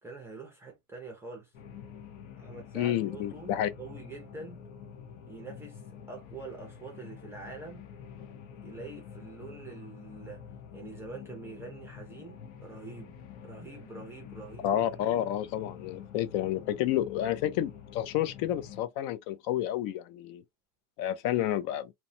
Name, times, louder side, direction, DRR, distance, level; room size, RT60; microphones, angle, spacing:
voice 1, 0.0-1.5 2.4-4.6 5.3-5.8 6.1-7.8 8.6-10.4 10.7-13.2 13.4-15.0, right 3 dB, 5° right, 0.4 m, -45 dB
sound 1, 1.5-18.8, left 7 dB, 80° left, 0.8 m, -47 dB
voice 2, 2.7-3.7 14.6-20.4 21.0-21.9, left 12 dB, 60° left, 0.5 m, -30 dB
3.0 x 2.1 x 2.6 m
cardioid pair, 180°, 38 cm